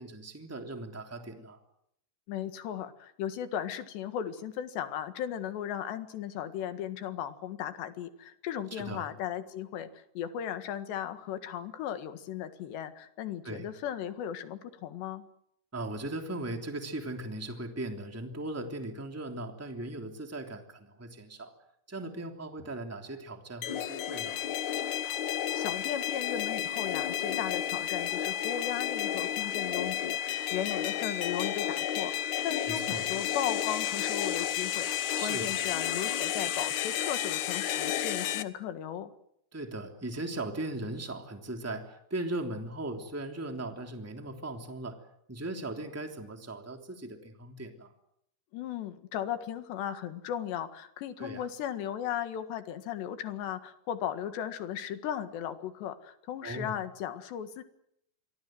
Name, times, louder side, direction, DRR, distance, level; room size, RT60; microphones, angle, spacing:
voice 1, 0.0-1.6 8.7-9.1 13.4-13.7 15.7-21.5 21.9-24.4 32.7-33.1 35.2-35.6 39.5-45.0 45.3-47.9 51.2-51.5 56.4-56.7, right 2 dB, 5° right, 4 dB, 2.5 m, -38 dB
voice 2, 2.3-15.2 25.5-39.1 48.5-57.6, left 10 dB, 90° left, 9 dB, 4.0 m, -36 dB
sound 1, 23.6-38.4, left 10 dB, 70° left, 1.9 m, -32 dB
28.0 x 24.0 x 7.8 m, 0.76 s
omnidirectional pair, 4.8 m